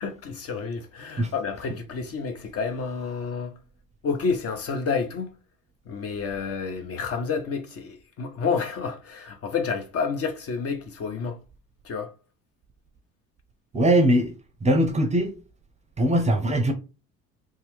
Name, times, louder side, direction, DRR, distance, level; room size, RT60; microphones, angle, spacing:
voice 1, 0.0-3.5 4.0-5.3 5.9-11.4 11.8-12.1, left 5 dB, 35° left, 0.6 m, -29 dB
voice 2, 13.7-14.3 14.6-15.3 16.0-16.7, right 1 dB, 15° right, 0.6 m, -21 dB
2.8 x 2.2 x 3.3 m
figure-of-eight pair, 60°, 43 cm